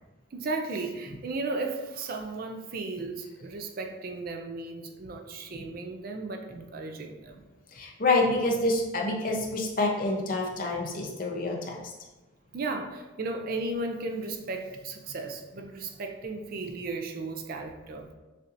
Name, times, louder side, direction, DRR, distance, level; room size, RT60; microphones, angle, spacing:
voice 1, 0.3-7.4 12.5-18.1, right 3 dB, 45° right, 4 dB, 0.4 m, -35 dB
voice 2, 7.7-11.8, left 2 dB, 45° left, 0 dB, 0.7 m, -27 dB
6.6 x 2.7 x 2.5 m, 1.1 s
head